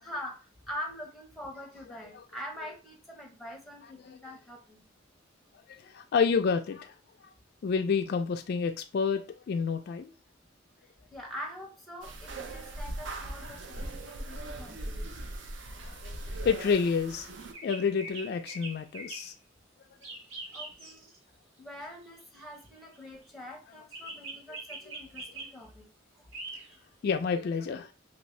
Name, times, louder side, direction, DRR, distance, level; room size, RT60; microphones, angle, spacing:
voice 1, 0.0-4.8 11.1-15.2 20.5-21.1 21.6-25.9 26.1-26.3, equal, ahead, 1 dB, 0.7 m, -44 dB
voice 2, 5.8-7.0 7.6-10.1 15.8-17.3 17.6-19.3 24.9-25.0 27.0-27.9, left 5 dB, 55° left, 6 dB, 0.3 m, -29 dB
sound 1, 12.0-17.5, right 1 dB, 65° right, 0.5 m, -40 dB
sound 2, 17.5-19.3 20.0-21.2 22.0-23.1 23.9-25.5 26.3-26.7, right 2 dB, 85° right, 1.3 m, -43 dB
2.9 x 2.6 x 3.1 m, 0.31 s
head